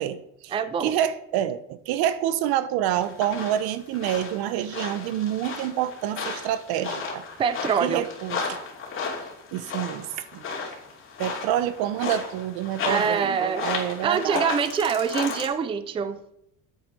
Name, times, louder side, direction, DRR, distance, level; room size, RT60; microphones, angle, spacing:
voice 1, 0.0-0.5 0.8-7.2 7.8-8.6 9.5-10.4 11.2-14.5, right 11 dB, 75° right, 14 dB, 0.9 m, -27 dB
voice 2, 0.5-1.0 7.4-8.0 12.9-13.7 14.0-16.2, right 6 dB, 15° right, 13 dB, 0.4 m, -25 dB
sound 1, 2.9-15.5, left 4 dB, 35° left, 2.7 m, -34 dB
9.2 x 7.9 x 5.4 m, 0.78 s
cardioid pair, 155°, 37 cm